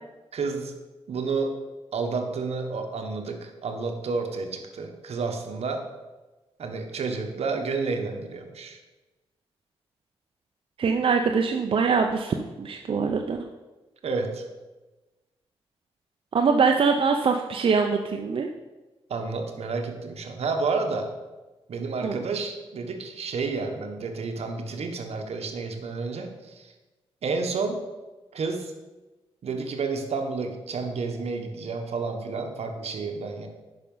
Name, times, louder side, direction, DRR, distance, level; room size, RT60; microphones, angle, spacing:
voice 1, 0.3-0.7 1.1-1.6 1.9-5.9 6.6-8.8 14.0-14.4 19.1-21.1 21.7-26.7 27.2-27.8 28.3-28.7 29.4-33.5, right 4 dB, 75° right, 4 dB, 1.3 m, -30 dB
voice 2, 10.8-13.5 16.3-18.5 22.0-22.2, right 5 dB, 55° right, 3 dB, 0.6 m, -23 dB
9.7 x 5.9 x 5.5 m, 1.2 s
wide cardioid pair, 110°, 11 cm